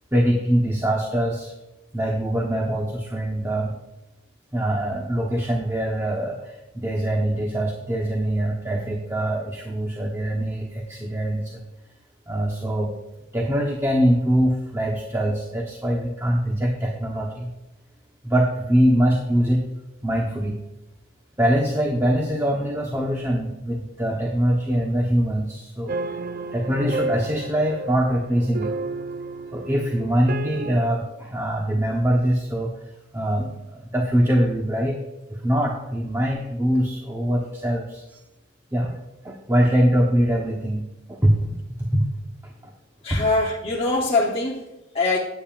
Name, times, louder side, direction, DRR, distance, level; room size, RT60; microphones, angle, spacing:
voice 1, 0.1-1.5 1.9-3.8 4.5-11.6 12.3-12.9 13.3-17.5 18.2-19.6 20.0-20.6 21.4-26.2 26.5-28.7 29.5-32.7 33.1-35.0 35.3-38.2 38.7-38.9 39.2-42.1 42.4-42.7 43.1-43.2, equal, 15° right, -1 dB, 1.1 m, -23 dB
sound 1, 25.9-30.9, right 3 dB, 45° right, 0.4 m, -31 dB
voice 2, 43.0-45.2, left 2 dB, 30° left, -4 dB, 0.9 m, -23 dB
14.5 x 9.2 x 2.5 m, 0.97 s
head